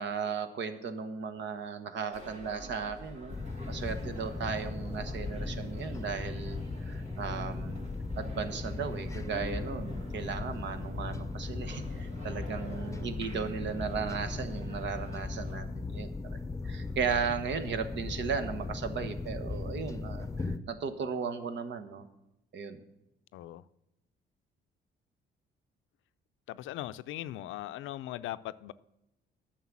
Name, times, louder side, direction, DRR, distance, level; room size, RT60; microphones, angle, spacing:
voice 1, 0.0-3.4 3.7-7.9 8.2-16.1 16.6-22.1 22.5-22.8, right 6 dB, 65° right, 9 dB, 1.2 m, -36 dB
sound 1, 2.1-15.6, right 1 dB, 35° right, 3.2 m, -48 dB
sound 2, 3.3-20.6, left 3 dB, 15° left, 0.8 m, -38 dB
voice 2, 23.3-23.7 26.5-28.7, left 14 dB, 80° left, 15 dB, 0.5 m, -39 dB
9.4 x 6.6 x 7.3 m, 0.88 s
cardioid pair, 90°, 20 cm